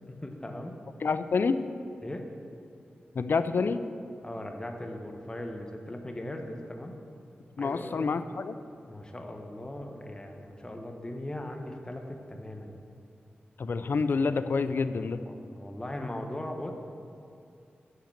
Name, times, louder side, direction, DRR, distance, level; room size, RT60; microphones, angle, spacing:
voice 1, 0.1-0.8 2.0-2.3 4.2-7.0 7.6-8.2 8.8-12.8 15.2-16.7, left 1 dB, 20° left, 4 dB, 1.0 m, -39 dB
voice 2, 1.0-1.6 3.1-3.8 7.6-8.6 13.6-15.2, left 4 dB, 65° left, 11 dB, 0.4 m, -28 dB
8.6 x 5.8 x 6.6 m, 2.5 s
cardioid pair, 65°, 4 cm